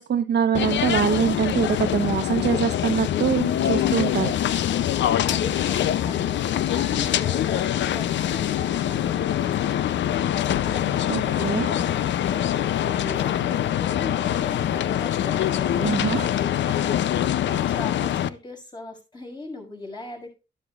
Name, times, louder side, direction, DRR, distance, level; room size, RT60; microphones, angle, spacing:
voice 1, 0.0-4.3 11.1-11.7 15.7-16.3, right 8 dB, 65° right, 8 dB, 1.0 m, -24 dB
sound 1, 0.5-18.3, left 11 dB, 70° left, 0.6 m, -24 dB
voice 2, 5.2-20.3, left 2 dB, 25° left, 0 dB, 6.1 m, -40 dB
12.0 x 12.0 x 2.4 m, 0.30 s
cardioid pair, 115°, 19 cm